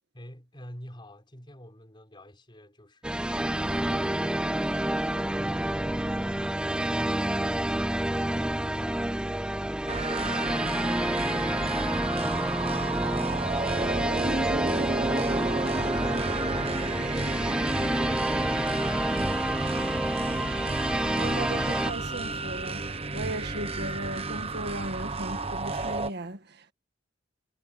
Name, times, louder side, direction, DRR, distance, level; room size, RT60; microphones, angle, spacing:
voice 1, 0.1-10.5, left 1 dB, 25° left, 5.1 m, -51 dB
sound 1, 3.0-21.9, right 1 dB, 5° right, 0.4 m, -29 dB
sound 2, 9.9-26.1, right 3 dB, 30° right, 1.4 m, -32 dB
voice 2, 21.1-26.7, right 1 dB, 60° right, 1.8 m, -37 dB
head